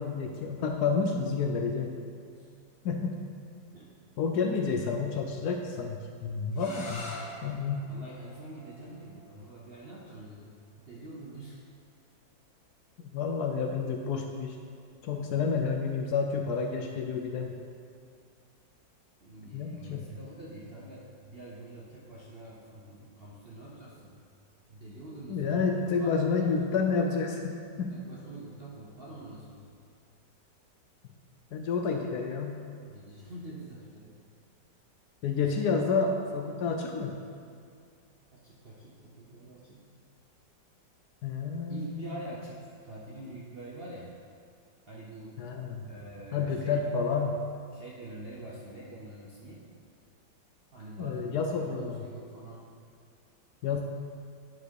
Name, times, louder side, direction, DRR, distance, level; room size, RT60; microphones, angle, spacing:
voice 1, 0.0-2.0 2.8-3.2 4.2-7.2 7.4-7.9 13.1-14.6 15.0-17.5 19.5-20.1 25.3-27.9 31.5-32.6 35.2-37.2 41.2-42.1 45.4-45.8 46.3-47.4 51.0-52.0 53.6-53.8, left 5 dB, 70° left, 3 dB, 1.0 m, -30 dB
sound 1, 6.5-12.2, left 2 dB, 45° left, 1.2 m, -47 dB
voice 2, 7.9-11.6 19.2-24.2 24.7-26.6 27.9-29.8 32.9-34.1 38.4-40.1 41.7-44.1 44.9-45.4 45.9-46.9 47.7-49.6 50.7-52.7, right 1 dB, 50° right, -4 dB, 0.7 m, -46 dB
9.8 x 4.7 x 4.6 m, 2.3 s
omnidirectional pair, 2.0 m